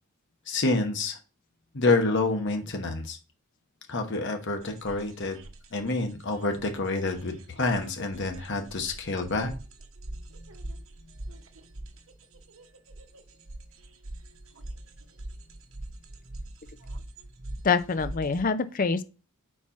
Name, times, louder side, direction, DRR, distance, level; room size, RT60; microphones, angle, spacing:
voice 1, 0.5-1.2 1.7-3.2 3.9-5.4 5.7-9.5, left 3 dB, 55° left, 1.2 m, -28 dB
sound 1, 4.6-18.4, right 1 dB, 65° right, 0.9 m, -43 dB
voice 2, 17.6-19.0, left 5 dB, 40° left, 0.5 m, -25 dB
4.5 x 4.3 x 5.7 m
head